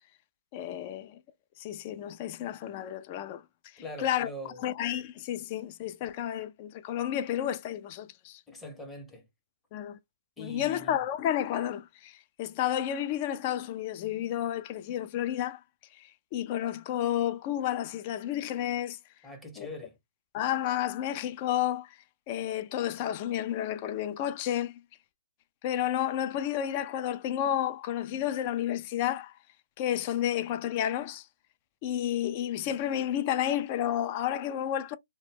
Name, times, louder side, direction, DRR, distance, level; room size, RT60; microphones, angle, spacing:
voice 1, 0.5-1.2 1.6-3.4 3.7-4.3 4.6-8.4 9.7-10.0 10.4-15.6 16.0-16.1 16.3-19.0 19.6-19.7 20.3-22.0 22.3-24.8 25.6-29.3 29.8-31.3 31.8-34.9, left 11 dB, 30° left, 0.4 m, -31 dB
voice 2, 3.8-4.6 8.5-9.3 10.4-11.0 19.2-20.0, left 2 dB, 10° left, 0.7 m, -42 dB
2.1 x 2.0 x 3.4 m
hypercardioid pair, 140°, 0 cm